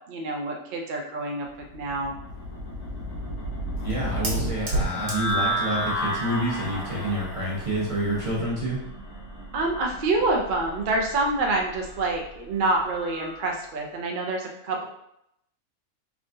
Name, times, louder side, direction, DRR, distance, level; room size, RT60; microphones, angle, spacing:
voice 1, 0.1-2.1 9.5-14.8, right 2 dB, 55° right, 1 dB, 0.5 m, -27 dB
sound 1, 1.5-13.4, equal, 85° left, 1.7 m, -33 dB
Fire, 2.3-8.5, right 2 dB, 80° right, 1.5 m, -35 dB
voice 2, 3.8-8.8, right 1 dB, 25° right, -6 dB, 0.8 m, -28 dB
4.0 x 3.4 x 2.5 m, 0.79 s
omnidirectional pair, 1.5 m